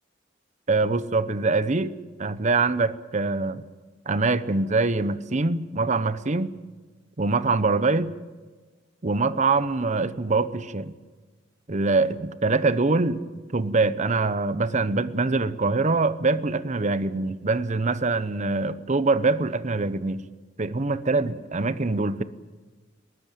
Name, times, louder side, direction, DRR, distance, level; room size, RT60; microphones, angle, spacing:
voice 1, 0.7-3.6 4.1-6.6 7.2-8.1 9.0-10.9 11.7-13.2 13.5-20.2 20.6-22.2, right 3 dB, 40° right, 14 dB, 0.9 m, -24 dB
21.0 x 18.0 x 9.1 m, 1.3 s
head